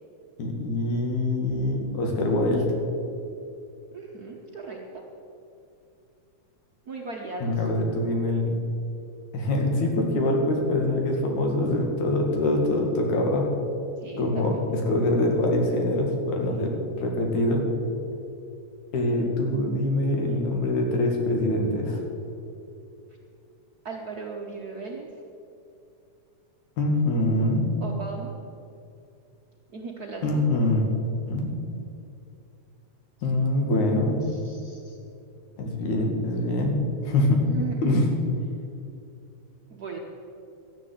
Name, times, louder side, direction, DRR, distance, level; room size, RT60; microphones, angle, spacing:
voice 1, 0.4-2.7 7.4-8.6 9.3-13.4 14.2-17.6 18.9-22.0 26.8-27.7 30.2-30.9 31.3-31.5 33.2-34.2 35.6-36.8 37.1-37.4 37.8-38.1, left 1 dB, 80° left, 1 dB, 3.4 m, -24 dB
voice 2, 3.9-5.1 6.9-7.6 14.0-14.6 16.6-16.7 19.1-19.3 23.8-25.1 27.8-28.3 29.7-30.4 34.3-35.0 37.4-38.0 39.7-40.0, right 4 dB, 85° right, 0 dB, 0.8 m, -37 dB
13.0 x 10.0 x 7.9 m, 2.6 s
omnidirectional pair, 3.4 m